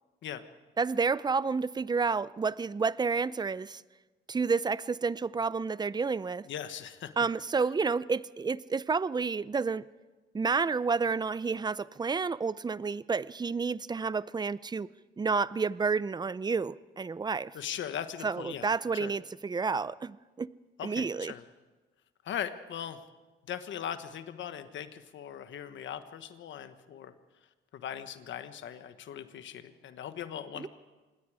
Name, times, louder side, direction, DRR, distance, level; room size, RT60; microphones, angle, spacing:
voice 1, 0.8-3.8 4.3-6.5 7.2-9.9 10.3-14.9 15.2-17.5 18.2-20.5 20.8-21.3 30.6-30.7, right 5 dB, 20° right, 18 dB, 0.5 m, -30 dB
voice 2, 6.5-7.1 17.5-18.7 18.9-19.1 20.8-21.4 22.2-23.0 23.5-27.1 27.7-30.7, left 9 dB, 70° left, 9 dB, 1.4 m, -39 dB
26.5 x 20.0 x 5.0 m, 1.2 s
cardioid pair, 90°, 20 cm